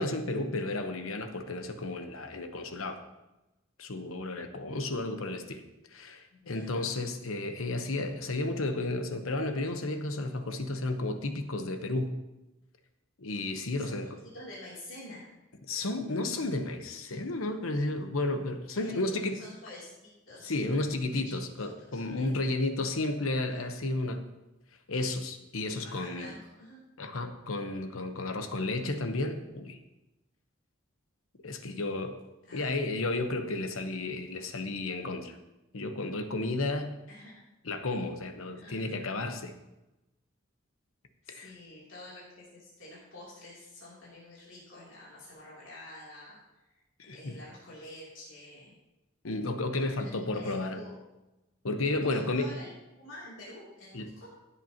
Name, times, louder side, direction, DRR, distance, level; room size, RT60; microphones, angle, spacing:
voice 1, 0.0-3.0 3.8-5.6 5.9-12.2 13.2-14.2 15.7-19.4 20.4-24.3 24.9-26.3 27.0-29.8 31.4-32.2 32.5-35.4 35.7-36.9 37.6-39.5 41.3-41.5 47.0-47.4 49.2-50.8 51.6-52.6 53.9-54.1, left 2 dB, 85° left, 7 dB, 1.1 m, -32 dB
voice 2, 6.4-6.8 13.7-15.3 18.7-20.5 21.2-21.7 21.9-22.3 23.4-23.7 25.7-26.8 32.5-32.7 37.1-37.4 38.5-39.0 41.2-46.8 47.1-48.7 50.0-51.0 52.1-54.3, left 1 dB, 65° left, -7 dB, 3.1 m, -48 dB
16.0 x 8.2 x 2.9 m, 0.99 s
head